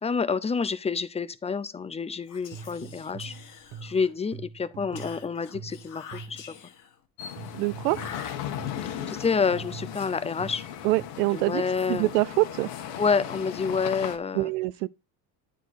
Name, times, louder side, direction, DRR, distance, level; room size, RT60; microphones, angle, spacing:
voice 1, 0.0-3.3 3.8-6.5 8.9-10.6 11.3-12.1 13.0-14.5, left 5 dB, 15° left, 0.5 m, -28 dB
Whispering, 2.2-4.2 5.0-7.0 7.9-8.9, left 7 dB, 40° left, 1.4 m, -45 dB
sound 1, 2.5-6.6 7.4-8.9 9.5-11.0, right 6 dB, 50° right, 1.3 m, -43 dB
sound 2, 7.2-14.2, left 10 dB, 70° left, 1.4 m, -37 dB
voice 2, 7.6-8.0 10.8-11.6 11.9-12.7 14.3-14.9, right 20 dB, 85° right, 0.5 m, -25 dB
9.4 x 4.1 x 4.1 m
supercardioid pair, 85°, 47 cm